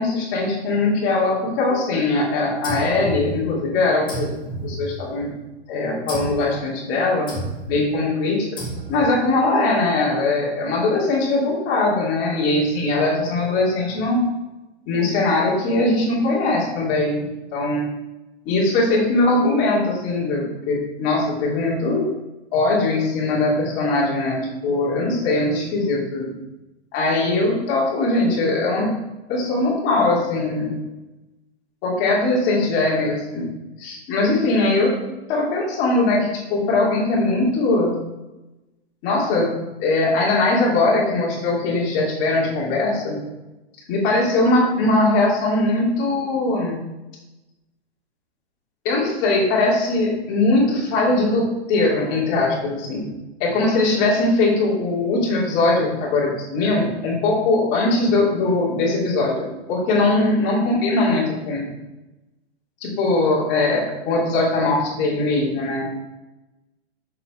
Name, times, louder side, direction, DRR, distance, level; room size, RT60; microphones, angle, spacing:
voice 1, 0.0-4.3 4.6-5.3 5.7-7.3 7.7-8.5 8.9-14.2 14.9-17.2 17.5-17.8 18.4-22.0 22.5-26.3 26.9-28.9 29.3-30.8 31.8-33.5 33.8-34.9 35.3-37.9 39.0-39.5 39.8-43.2 43.9-46.8 48.8-53.0 53.4-61.7 62.8-65.9, left 2 dB, 35° left, -4 dB, 3.0 m, -20 dB
sound 1, 2.6-3.7 4.1-5.4 6.1-6.5 7.3-7.8 8.6-9.2, right 1 dB, 15° left, 1.7 m, -31 dB
7.2 x 6.8 x 4.5 m, 1.0 s
supercardioid pair, 160°, 33 cm